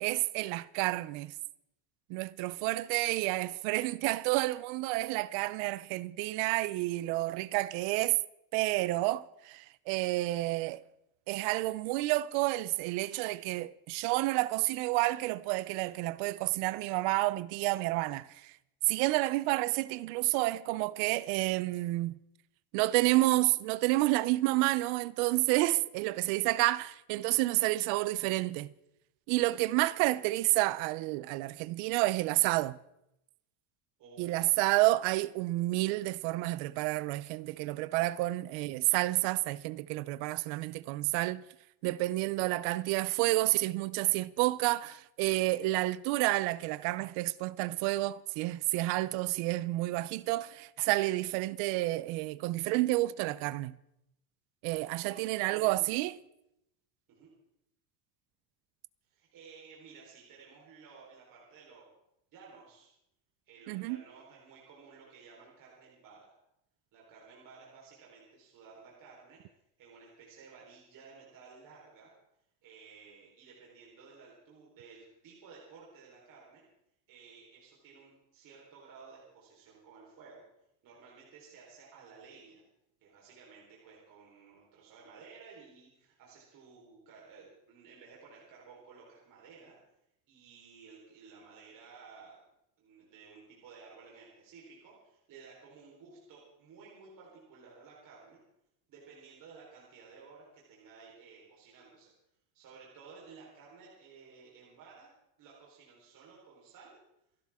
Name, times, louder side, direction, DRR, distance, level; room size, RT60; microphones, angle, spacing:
voice 1, 0.0-1.3 2.1-8.2 8.5-10.8 11.3-18.5 18.9-22.2 22.7-28.7 29.3-32.8 34.2-41.4 41.8-53.7 54.6-56.2 63.7-64.0, right 19 dB, 75° right, 0.7 m, -30 dB
voice 2, 2.4-3.5 34.0-34.4 55.0-56.0 57.1-57.3 59.1-61.9 62.3-62.9 63.5-66.3 66.9-69.4 69.8-72.1 72.6-76.6 77.1-80.5 80.8-82.6 83.0-89.8 90.3-92.4 92.8-98.4 98.9-102.1 102.5-105.1 105.4-107.0, right 5 dB, 45° right, 4.1 m, -55 dB
29.0 x 12.0 x 3.6 m
cardioid pair, 175°, 46 cm